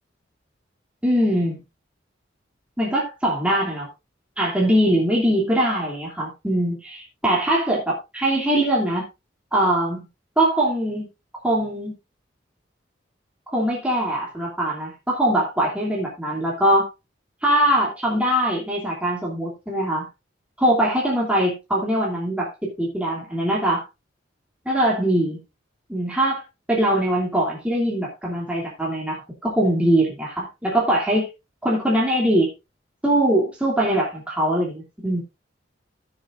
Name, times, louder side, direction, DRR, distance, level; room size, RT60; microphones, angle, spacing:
voice 1, 1.0-1.6 2.8-3.9 4.4-9.0 9.5-10.1 10.4-11.1 11.4-11.9 13.5-16.9 17.4-20.1 20.6-23.8 24.6-25.4 25.9-26.4 26.7-31.3 31.6-32.5 33.0-35.2, right 1 dB, 5° right, -4 dB, 2.7 m, -22 dB
15.5 x 7.3 x 2.5 m, 0.25 s
head